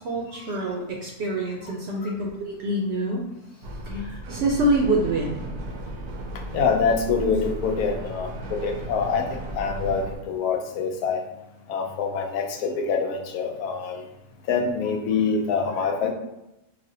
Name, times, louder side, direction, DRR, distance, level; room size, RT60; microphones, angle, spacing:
voice 1, 0.0-3.2 3.8-5.4, right 1 dB, 65° right, -1 dB, 0.6 m, -26 dB
sound 1, 3.6-10.2, right 1 dB, 85° right, 1.1 m, -35 dB
voice 2, 6.5-9.2 9.5-11.2 11.7-14.0 14.5-16.1, left 5 dB, 85° left, 4 dB, 1.1 m, -25 dB
5.1 x 2.1 x 2.7 m, 0.94 s
omnidirectional pair, 1.6 m